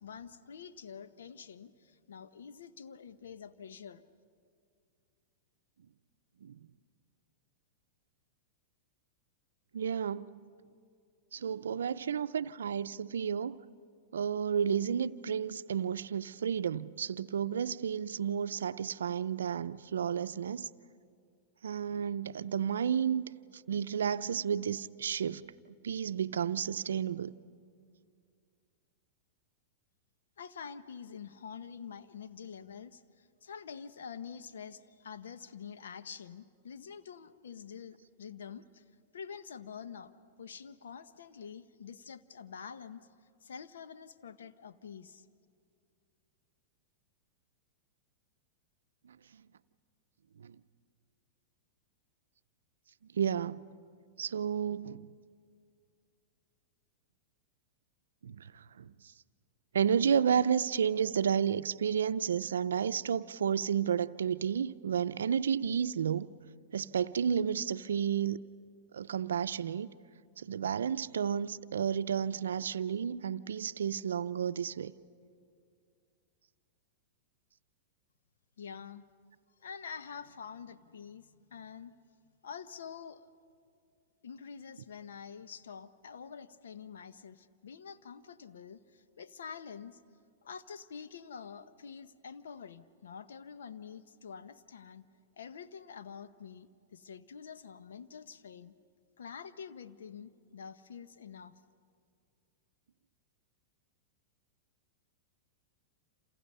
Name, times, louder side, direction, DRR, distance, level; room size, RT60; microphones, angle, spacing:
voice 1, 0.0-4.0 30.4-38.8 39.1-40.1 40.4-43.1 43.4-45.3 78.6-79.0 79.6-82.0 82.4-83.2 84.2-90.0 90.4-95.1 95.4-98.7 99.2-101.6, left 6 dB, 80° left, 0.9 m, -47 dB
voice 2, 9.7-10.3 11.3-13.6 14.1-20.7 21.6-23.2 23.5-25.5 25.8-27.3 49.0-49.4 50.4-50.6 53.1-53.7 54.2-55.1 58.2-58.9 59.7-66.3 66.7-68.4 68.9-69.9 70.4-74.9, right 8 dB, 85° right, 0.5 m, -32 dB
28.5 x 28.0 x 5.5 m
hypercardioid pair, 115°, 0 cm